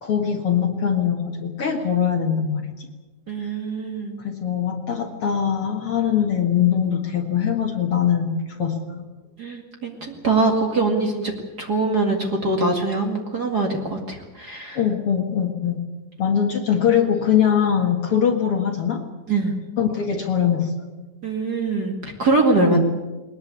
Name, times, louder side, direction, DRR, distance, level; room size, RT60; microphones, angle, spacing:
voice 1, 0.0-2.7 3.4-3.5 4.2-9.0 14.7-15.8 16.2-19.0 19.8-20.7, left 8 dB, 65° left, 2 dB, 1.3 m, -22 dB
voice 2, 3.3-4.2 9.4-11.3 11.6-14.8 19.3-19.5 21.2-22.8, right 3 dB, 40° right, 2 dB, 1.4 m, -23 dB
20.5 x 20.5 x 8.4 m, 1.2 s
omnidirectional pair, 5.2 m